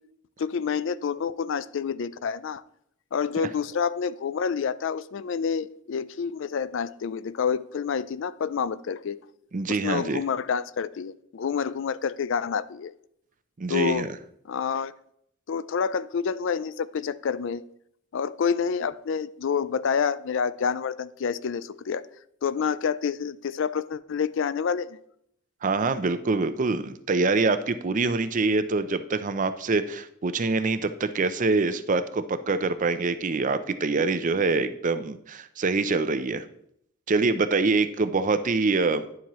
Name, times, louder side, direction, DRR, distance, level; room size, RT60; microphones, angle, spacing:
voice 1, 0.4-2.6 3.1-9.2 9.7-12.9 13.7-14.1 14.5-14.9 15.5-17.6 18.1-22.0 22.4-25.0, left 6 dB, 65° left, 17 dB, 0.4 m, -28 dB
voice 2, 9.5-10.2 13.6-14.1 25.6-36.4 37.1-39.1, right 3 dB, 40° right, 12 dB, 0.5 m, -25 dB
10.5 x 7.3 x 3.1 m, 0.71 s
head